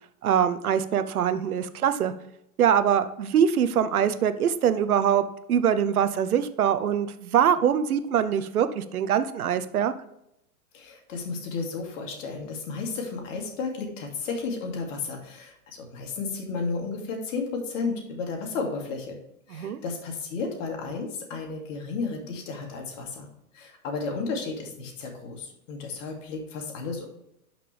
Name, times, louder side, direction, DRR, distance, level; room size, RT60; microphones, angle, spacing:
voice 1, 0.2-2.1 2.6-5.2 5.5-9.9 19.5-19.8, right 8 dB, 75° right, 12 dB, 0.9 m, -23 dB
voice 2, 10.7-19.2 19.5-23.3 23.5-27.0, left 4 dB, 55° left, 1 dB, 2.8 m, -33 dB
12.0 x 6.0 x 3.4 m, 0.80 s
hypercardioid pair, 105°, 44 cm